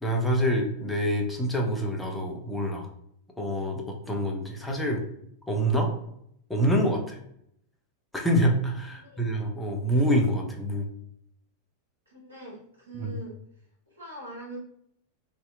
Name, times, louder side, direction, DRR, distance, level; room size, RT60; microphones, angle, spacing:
voice 1, 0.0-2.9 3.4-5.0 5.5-5.9 6.5-7.2 8.1-10.9 12.9-13.1, equal, 5° left, 0 dB, 0.5 m, -26 dB
voice 2, 8.9-9.2 12.1-13.3 13.9-14.6, right 1 dB, 75° right, -5 dB, 1.1 m, -43 dB
2.7 x 2.4 x 2.2 m, 0.72 s
figure-of-eight pair, 90°, 0 cm